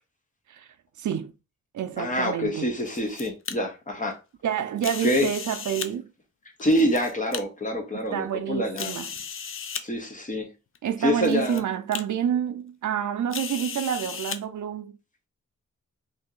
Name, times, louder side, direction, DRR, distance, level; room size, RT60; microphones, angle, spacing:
voice 1, 1.0-1.3 1.7-2.7 4.4-6.1 7.9-9.2 10.8-14.9, right 9 dB, 75° right, 0.5 m, -28 dB
voice 2, 2.0-4.2 5.0-5.3 6.6-8.9 9.8-10.5 11.0-11.6, equal, 25° left, 0.8 m, -26 dB
sound 1, 2.6-3.5 4.8-5.9 6.6-7.4 8.1-8.2 8.8-9.8 10.7-10.8 11.2-11.6 11.9-12.0 13.3-14.4, left 7 dB, 45° left, 0.4 m, -35 dB
2.8 x 2.7 x 3.7 m
wide cardioid pair, 150°, 30 cm